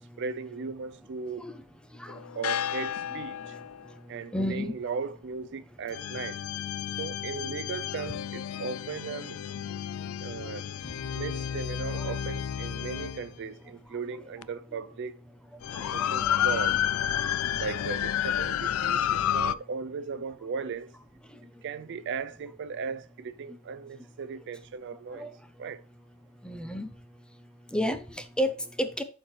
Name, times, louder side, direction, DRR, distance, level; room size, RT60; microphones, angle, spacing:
voice 1, 0.2-1.5 2.4-3.6 4.1-6.4 7.0-9.4 10.2-10.6 11.1-15.2 15.9-16.8 17.6-20.9 21.6-25.3 25.6-25.8, right 5 dB, 55° right, 0.4 m, -37 dB
sound 1, 2.1-3.9 5.9-13.3 14.4-14.5 15.6-19.5, left 10 dB, 75° left, 0.3 m, -31 dB
voice 2, 4.3-4.7 11.9-12.1 15.7-16.5 17.2-17.4 25.1-25.3 26.4-26.9 27.7-29.0, equal, 5° left, 0.6 m, -32 dB
12.0 x 4.5 x 3.2 m
head